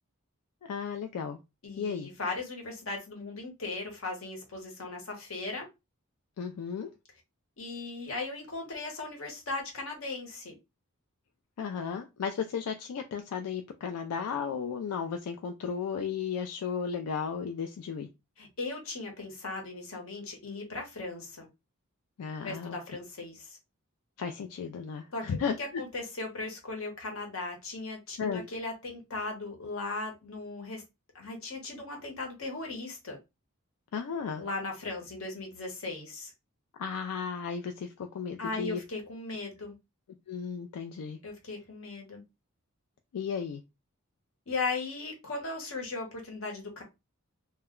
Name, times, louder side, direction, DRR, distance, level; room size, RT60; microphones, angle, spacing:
voice 1, 0.6-1.4 1.8-2.1 6.4-6.9 11.6-18.1 22.2-22.8 24.2-25.8 28.2-28.4 33.9-34.4 36.8-38.8 40.3-41.2 43.1-43.6, left 6 dB, 85° left, 0.4 m, -34 dB
voice 2, 1.6-5.7 7.6-10.5 18.4-21.5 22.4-23.6 25.1-25.2 25.6-30.8 31.1-33.2 34.4-36.3 38.4-39.7 41.2-42.2 44.5-46.8, left 3 dB, 65° left, 0.9 m, -37 dB
2.2 x 2.1 x 3.5 m
head